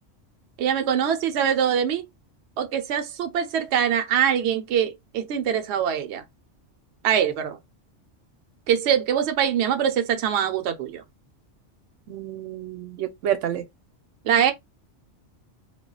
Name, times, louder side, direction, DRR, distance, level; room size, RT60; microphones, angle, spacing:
voice 1, 0.6-2.0 2.6-6.2 7.0-7.6 8.7-11.0 14.2-14.5, right 8 dB, 70° right, 0.8 m, -23 dB
voice 2, 12.1-13.6, right 11 dB, 90° right, 1.0 m, -29 dB
2.2 x 2.2 x 3.8 m
omnidirectional pair, 1.3 m